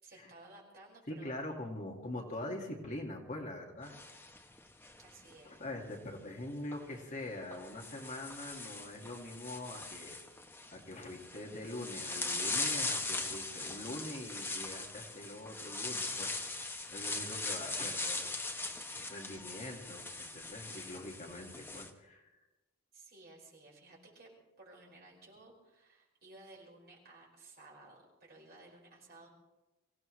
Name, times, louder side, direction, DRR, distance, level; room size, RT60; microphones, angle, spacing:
voice 1, 0.0-1.4 5.0-5.6 22.9-24.3 24.6-29.3, right 2 dB, 45° right, -2 dB, 5.3 m, -56 dB
voice 2, 1.1-4.0 5.4-10.2 10.7-16.5 16.9-18.4 19.1-22.3, left 1 dB, 35° left, 0 dB, 2.0 m, -43 dB
sound 1, 3.8-5.3 6.6-6.8 7.5-21.9, left 3 dB, 10° left, 1.0 m, -40 dB
25.5 x 16.5 x 3.2 m, 1.1 s
head